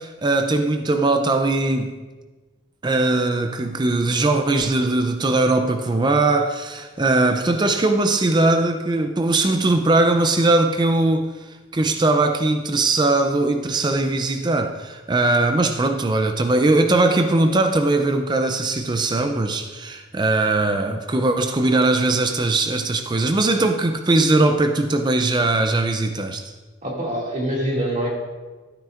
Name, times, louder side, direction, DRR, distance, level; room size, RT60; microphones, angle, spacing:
voice 1, 0.0-2.0 2.8-11.3 11.7-26.4, right 2 dB, 20° right, 0.4 m, -20 dB
voice 2, 26.8-28.1, equal, 35° right, 2.3 m, -24 dB
13.0 x 9.0 x 2.5 m
head